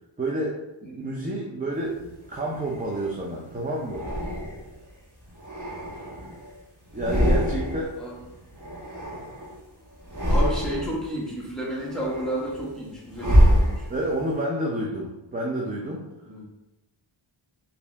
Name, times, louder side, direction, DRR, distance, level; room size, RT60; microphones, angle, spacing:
voice 1, 0.2-2.0 2.3-4.0 5.9-6.0 6.9-8.0 13.9-16.1, right 1 dB, 15° right, -3 dB, 0.6 m, -29 dB
sound 1, 2.0-3.2 3.8-4.8 5.3-6.5 6.8-9.6 10.0-11.0 11.5-14.2, equal, 40° right, 1.2 m, -25 dB
voice 2, 10.3-13.9 16.2-16.4, equal, ahead, -5 dB, 1.2 m, -32 dB
4.3 x 2.8 x 3.4 m, 0.98 s
wide cardioid pair, 105°, 49 cm